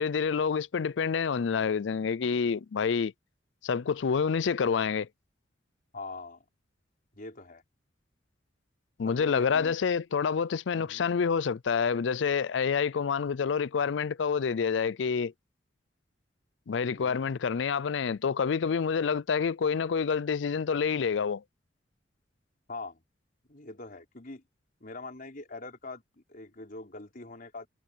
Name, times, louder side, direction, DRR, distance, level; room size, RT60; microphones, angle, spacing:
voice 1, 0.0-3.1 3.6-5.1 9.0-15.3 16.7-21.4, left 6 dB, 70° left, 0.4 m, -28 dB
voice 2, 5.9-6.4 7.1-7.6 9.0-9.8 10.7-11.1 16.9-17.2 22.7-23.0 23.5-24.4 24.8-27.7, left 3 dB, 50° left, 4.2 m, -43 dB
head